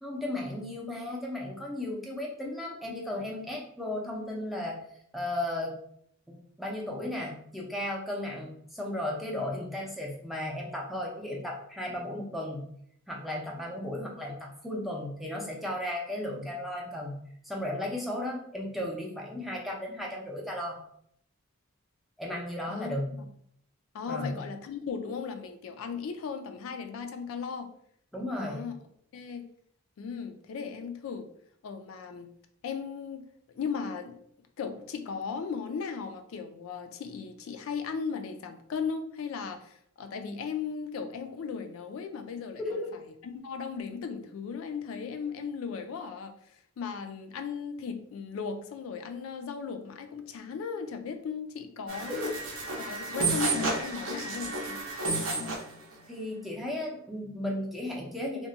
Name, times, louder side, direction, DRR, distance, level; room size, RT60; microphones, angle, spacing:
voice 1, 0.0-4.8 5.1-5.8 6.3-12.7 13.1-17.2 17.4-20.8 22.2-23.1 24.1-24.3 28.1-28.6 42.6-42.9 52.1-52.3 56.1-58.5, left 1 dB, ahead, -2 dB, 0.5 m, -35 dB
voice 2, 23.9-27.7 28.4-28.8 29.1-29.5 30.0-31.3 31.6-32.3 32.6-34.2 34.6-42.8 43.4-52.3 52.8-54.8, left 6 dB, 70° left, 7 dB, 0.3 m, -37 dB
sound 1, 51.9-55.7, right 3 dB, 70° right, 0.8 m, -31 dB
2.3 x 2.1 x 3.8 m, 0.68 s
head